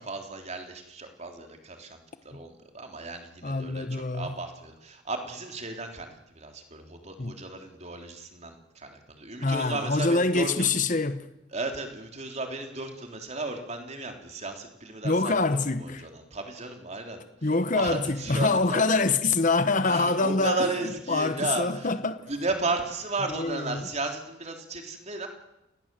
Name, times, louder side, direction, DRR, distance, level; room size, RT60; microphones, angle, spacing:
voice 1, 0.0-2.0 2.2-6.1 6.3-10.7 11.5-15.3 15.8-17.2 17.7-19.0 19.8-21.9 22.3-25.3, right 3 dB, 35° right, 3.4 m, -34 dB
voice 2, 3.4-4.3 7.2-7.4 9.4-11.3 15.0-16.1 17.4-20.7 21.1-22.2 23.3-23.9, left 3 dB, 40° left, 1.1 m, -25 dB
29.0 x 18.0 x 7.7 m
head